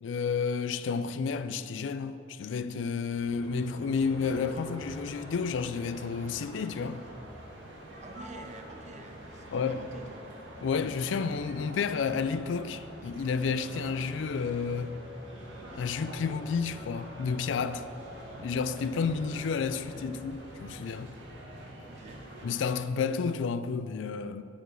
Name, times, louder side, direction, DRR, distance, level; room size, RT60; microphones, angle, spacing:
voice 1, 0.0-7.0 9.5-9.8 10.6-15.0 15.7-17.8 18.4-21.1 22.4-24.4, left 5 dB, 75° left, 0.3 m, -31 dB
sound 1, 3.0-22.7, right 1 dB, 80° right, 1.6 m, -46 dB
voice 2, 8.0-10.3 21.9-22.2, right 3 dB, 40° right, 0.6 m, -48 dB
sound 2, 10.5-11.2 11.8-12.6 13.3-14.0 14.6-15.3 16.0-20.3, left 4 dB, 25° left, 0.7 m, -54 dB
7.6 x 5.1 x 6.2 m
head